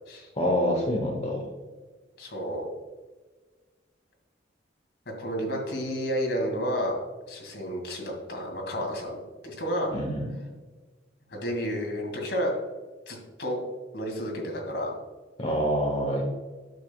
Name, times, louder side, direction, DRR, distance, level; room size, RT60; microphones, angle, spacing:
voice 1, 0.3-1.5 9.9-10.3 15.4-16.2, equal, 30° left, -1 dB, 0.9 m, -26 dB
voice 2, 2.2-2.7 5.2-7.0 7.3-9.9 11.3-12.5 13.1-13.6 13.9-14.9, equal, 60° left, 0 dB, 2.2 m, -31 dB
9.2 x 6.9 x 2.3 m, 1.4 s
head